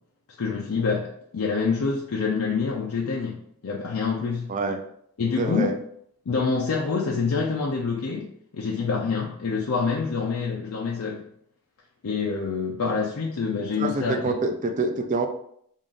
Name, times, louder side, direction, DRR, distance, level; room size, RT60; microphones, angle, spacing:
voice 1, 0.4-4.5 5.2-5.7 6.3-8.3 8.5-11.2 12.0-14.3, left 5 dB, 75° left, -2 dB, 0.5 m, -26 dB
voice 2, 4.5-4.8 5.4-5.8 13.8-15.3, right 3 dB, 35° right, 6 dB, 0.4 m, -26 dB
3.6 x 2.5 x 3.8 m, 0.68 s
head